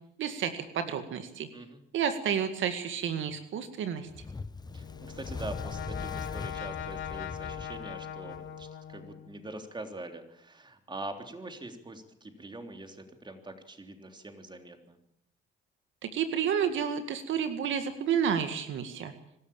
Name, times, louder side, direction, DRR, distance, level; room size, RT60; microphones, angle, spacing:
voice 1, 0.2-1.5 1.9-4.1 16.0-19.1, right 8 dB, 75° right, 8 dB, 2.0 m, -30 dB
Fire, 4.1-8.7, left 4 dB, 20° left, 0.9 m, -41 dB
Brass instrument, 4.6-9.4, left 9 dB, 75° left, 2.6 m, -40 dB
voice 2, 4.7-15.0, right 2 dB, 25° right, 6 dB, 3.5 m, -44 dB
24.5 x 13.5 x 8.8 m, 0.76 s
cardioid pair, 90°, 20 cm